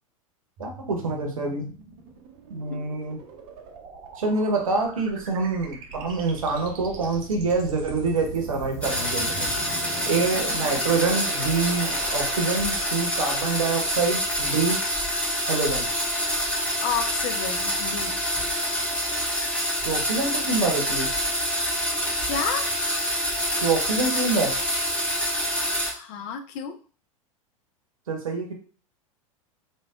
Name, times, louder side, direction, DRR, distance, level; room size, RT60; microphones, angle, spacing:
sound 1, 0.6-14.0, right 4 dB, 45° right, 0.7 m, -40 dB
voice 1, 0.6-1.7 2.5-3.2 4.2-9.5 10.0-14.8 15.4-15.9 19.8-21.1 23.6-24.6 28.1-28.5, right 3 dB, 75° right, 2 dB, 0.9 m, -26 dB
sound 2, 8.8-25.9, equal, 5° left, 0.9 m, -26 dB
voice 2, 16.8-18.2 22.3-22.8 25.9-26.8, left 7 dB, 45° left, 7 dB, 0.5 m, -31 dB
3.2 x 2.3 x 2.4 m, 0.39 s
figure-of-eight pair, 90°, 18 cm